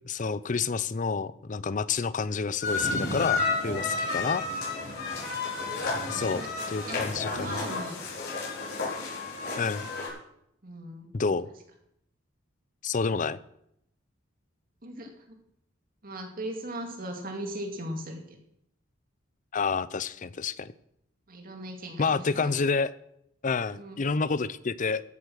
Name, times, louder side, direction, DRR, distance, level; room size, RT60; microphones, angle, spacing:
voice 1, 0.0-4.5 6.1-7.7 9.6-9.9 11.1-11.5 12.8-13.4 19.5-20.7 22.0-22.9 23.4-25.0, left 4 dB, 40° left, 17 dB, 0.5 m, -29 dB
sound 1, 2.6-10.1, left 3 dB, 55° left, 5.6 m, -31 dB
voice 2, 5.9-6.5 6.9-7.0 7.3-8.0 10.6-11.3 14.8-15.4 16.0-18.4 21.3-22.5 23.7-24.0, right 1 dB, 45° right, 3 dB, 2.4 m, -39 dB
14.5 x 8.2 x 6.4 m, 0.75 s
head